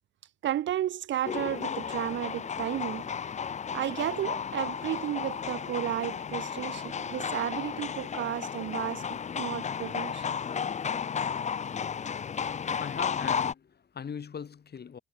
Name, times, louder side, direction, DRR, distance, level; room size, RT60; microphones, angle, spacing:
voice 1, 0.4-3.1 3.7-10.2, right 12 dB, 65° right, 1.0 m, -33 dB
sound 1, 1.2-13.5, left 7 dB, 35° left, 0.6 m, -33 dB
voice 2, 12.2-15.0, left 7 dB, 55° left, 7.8 m, -40 dB
supercardioid pair, 55°, 20 cm